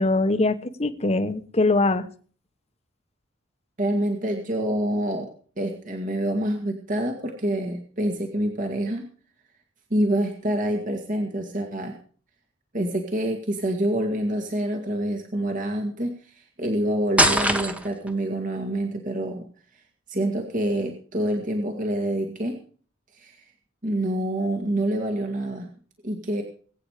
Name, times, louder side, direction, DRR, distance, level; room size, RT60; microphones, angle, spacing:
voice 1, 0.0-2.1, left 2 dB, 35° left, 10 dB, 1.3 m, -22 dB
voice 2, 3.8-5.3 5.6-9.1 9.9-12.0 12.7-19.5 20.1-22.6 23.1-23.4 23.8-25.7 26.0-26.4, right 1 dB, 45° right, 2 dB, 2.1 m, -27 dB
sound 1, 17.2-18.1, right 1 dB, 5° right, 1.4 m, -21 dB
21.5 x 9.1 x 5.0 m, 0.43 s
head